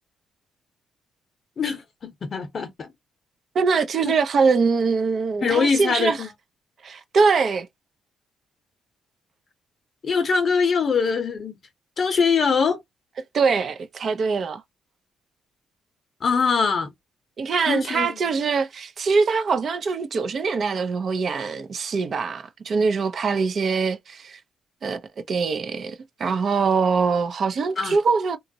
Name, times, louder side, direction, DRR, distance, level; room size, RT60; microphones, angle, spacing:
voice 1, 1.6-2.9 4.0-4.1 5.4-6.3 10.0-11.6 12.0-12.8 16.2-16.9 17.7-18.2 27.8-28.0, left 5 dB, 50° left, 0.6 m, -23 dB
voice 2, 3.5-6.2 6.8-7.7 13.3-14.6 17.4-24.4 24.8-25.0 25.3-28.4, right 5 dB, 50° right, 0.6 m, -23 dB
2.9 x 2.3 x 2.7 m
cardioid pair, 90°, 0 cm